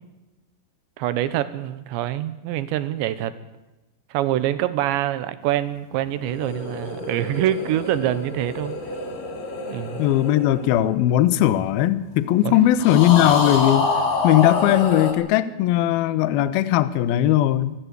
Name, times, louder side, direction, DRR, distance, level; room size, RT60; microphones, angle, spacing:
voice 1, 1.0-3.3 4.1-8.8 9.7-10.0 12.4-12.6, right 12 dB, 75° right, 13 dB, 3.0 m, -25 dB
sound 1, 6.1-11.7 12.8-15.1, left 3 dB, 50° left, 3.7 m, -27 dB
voice 2, 10.0-13.9 14.2-17.8, left 13 dB, 90° left, 14 dB, 2.1 m, -19 dB
24.0 x 16.0 x 8.2 m, 1.0 s
omnidirectional pair, 5.6 m